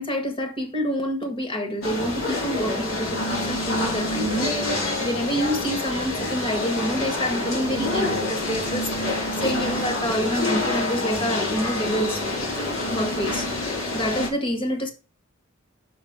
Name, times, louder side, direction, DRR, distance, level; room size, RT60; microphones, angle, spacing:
voice 1, 0.0-12.2 12.9-13.5 13.9-14.9, equal, 25° left, 1.6 m, -27 dB
sound 1, 1.8-14.3, left 2 dB, 90° left, 3.7 m, -27 dB
6.0 x 5.7 x 4.9 m
head